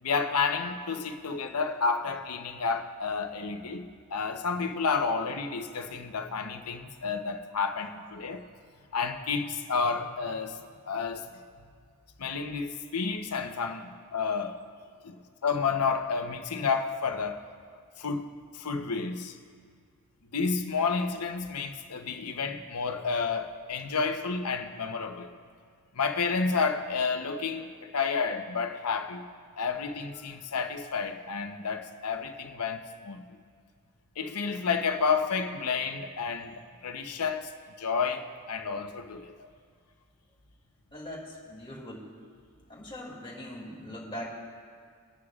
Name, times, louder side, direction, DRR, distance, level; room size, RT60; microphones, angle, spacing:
voice 1, 0.0-8.4 8.9-10.6 10.9-11.3 12.2-14.6 15.0-17.4 18.0-19.4 20.3-25.3 25.9-29.2 29.6-33.2 34.2-36.5 36.8-37.5 37.8-39.5, left 5 dB, 85° left, 0.8 m, -30 dB
voice 2, 40.9-42.1 42.7-44.3, equal, 25° left, 2.5 m, -41 dB
21.5 x 9.7 x 2.4 m
head